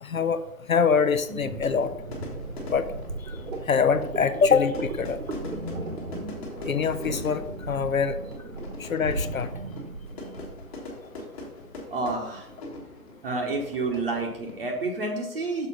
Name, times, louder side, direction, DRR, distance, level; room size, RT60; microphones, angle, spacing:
voice 1, 0.0-0.4 0.7-1.9 2.7-2.9 3.7-5.2 6.6-8.2 8.8-9.5, left 6 dB, 60° left, 12 dB, 0.7 m, -24 dB
Fire / Fireworks, 0.8-14.8, left 2 dB, 20° left, 1.6 m, -42 dB
sound 1, 1.3-10.7, right 2 dB, 55° right, 1.3 m, -36 dB
voice 2, 11.9-12.5 13.2-15.7, right 3 dB, 40° right, 0 dB, 1.1 m, -29 dB
6.7 x 4.8 x 5.4 m, 0.80 s
figure-of-eight pair, 145°, 46 cm